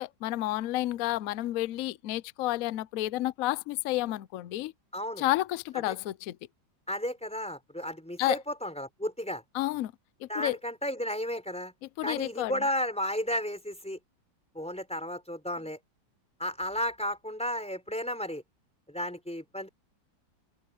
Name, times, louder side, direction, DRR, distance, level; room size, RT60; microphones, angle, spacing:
voice 1, 0.0-4.7 5.2-6.4 8.2-8.4 9.5-9.9 10.2-10.6 12.0-12.5, left 16 dB, 75° left, 0.8 m, -30 dB
voice 2, 4.9-5.2 5.9-6.0 6.9-9.4 10.3-11.7 12.0-14.0 14.5-15.8 16.4-18.4 18.9-19.7, equal, 5° left, 4.0 m, -33 dB
omnidirectional pair, 2.1 m